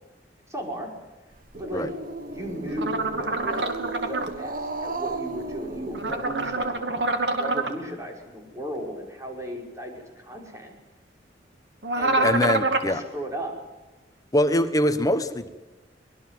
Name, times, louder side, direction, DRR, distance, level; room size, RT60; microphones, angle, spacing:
voice 1, 0.5-0.9 1.6-1.9 2.3-3.7 4.1-7.0 7.4-10.7 11.9-12.5 12.8-13.6, right 1 dB, 20° right, 1 dB, 5.7 m, -35 dB
Growling, 1.3-6.7, right 2 dB, 55° right, 1.7 m, -35 dB
sound 1, 2.8-4.3 5.9-7.7 11.8-12.9, right 2 dB, 75° right, 2.6 m, -26 dB
voice 2, 12.2-13.0 14.3-15.5, left 1 dB, 20° left, 10 dB, 1.3 m, -23 dB
24.0 x 21.5 x 7.7 m, 1.2 s
head